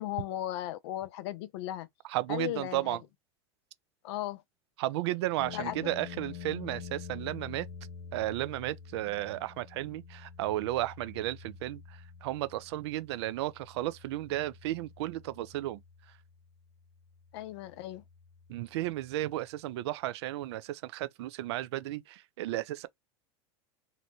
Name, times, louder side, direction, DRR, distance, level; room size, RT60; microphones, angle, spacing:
voice 1, 0.0-1.9 2.3-3.0 4.0-4.4 5.5-5.7 17.3-18.0, left 13 dB, 70° left, 0.4 m, -36 dB
voice 2, 2.1-3.0 4.8-7.7 8.1-15.8 18.5-22.9, right 15 dB, 75° right, 0.4 m, -34 dB
sound 1, 5.4-19.4, left 7 dB, 85° left, 0.8 m, -48 dB
2.7 x 2.1 x 2.8 m
hypercardioid pair, 100°, 14 cm